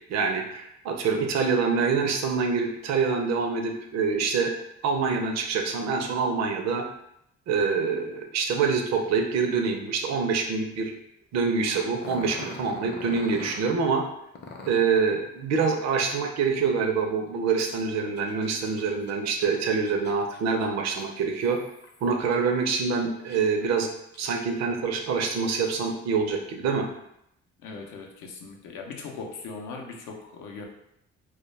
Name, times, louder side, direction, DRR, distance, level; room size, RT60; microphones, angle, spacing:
voice 1, 0.1-4.5 4.8-6.9 7.5-10.9 11.3-14.0 14.7-21.6 22.0-23.9 24.2-26.8, right 5 dB, 60° right, 3 dB, 0.5 m, -25 dB
Growling, 12.0-13.7 14.3-14.9 17.6-22.3 22.8-23.6 24.1-24.2 24.9-25.9, left 3 dB, 35° left, 0.5 m, -44 dB
voice 2, 27.6-30.6, left 4 dB, 85° left, 2 dB, 0.5 m, -39 dB
2.2 x 2.1 x 3.1 m, 0.78 s
supercardioid pair, 65°, 30 cm